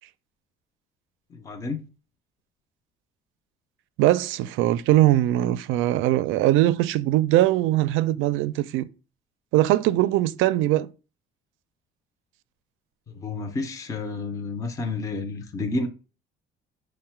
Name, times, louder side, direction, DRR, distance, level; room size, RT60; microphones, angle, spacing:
voice 1, 1.3-1.8 13.1-15.9, left 3 dB, 15° left, 0.5 m, -30 dB
voice 2, 4.0-8.9 9.5-10.9, right 15 dB, 80° right, 0.4 m, -21 dB
5.3 x 2.1 x 4.4 m
cardioid pair, 165°, 20 cm